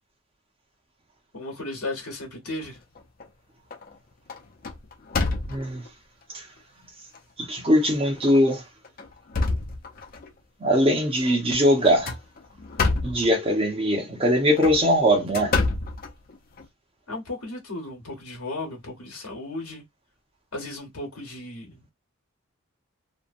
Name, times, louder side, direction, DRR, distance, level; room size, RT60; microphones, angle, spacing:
voice 1, 1.3-2.8 17.1-19.8 20.5-21.9, left 2 dB, 75° left, 1.1 m, -35 dB
sound 1, 2.7-3.3 3.7-4.0 4.3-5.9 6.6-6.7 7.1-7.2 8.1-8.4 8.8-10.3 11.8-13.3 14.4-16.7, left 3 dB, 40° left, 0.4 m, -28 dB
voice 2, 5.5-5.9 6.3-6.5 7.4-8.6 10.6-12.1 13.0-15.5, equal, 25° right, 0.7 m, -21 dB
2.8 x 2.1 x 2.5 m
head